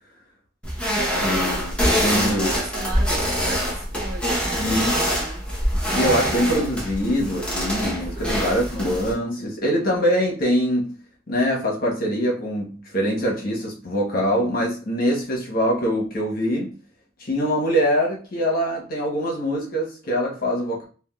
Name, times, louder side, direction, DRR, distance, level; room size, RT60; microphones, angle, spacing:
sound 1, 0.6-9.1, equal, 5° left, 0.8 m, -24 dB
voice 1, 1.1-2.5 4.6-5.0 5.9-11.0 11.3-16.7 17.2-20.8, equal, 50° left, 0.9 m, -23 dB
voice 2, 2.0-5.4 8.1-8.7 9.4-9.8, right 2 dB, 55° right, 1.1 m, -37 dB
3.4 x 2.1 x 2.3 m
head